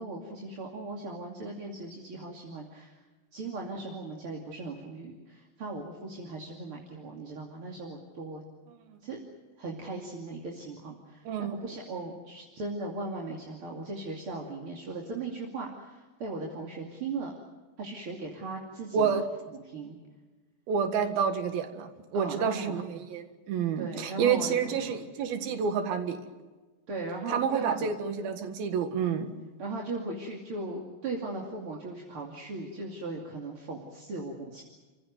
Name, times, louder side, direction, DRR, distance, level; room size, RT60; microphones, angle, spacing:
voice 1, 0.0-3.0 3.3-8.4 9.0-9.2 9.6-17.3 17.8-19.1 19.5-20.0 22.1-22.8 23.8-25.0 26.9-27.9 29.6-34.6, right 3 dB, 40° right, 0 dB, 3.1 m, -38 dB
voice 2, 11.3-11.6 18.9-19.2 20.7-26.2 27.3-29.3, right 6 dB, 75° right, 8 dB, 3.6 m, -29 dB
30.0 x 16.0 x 9.4 m, 1.3 s
omnidirectional pair, 4.3 m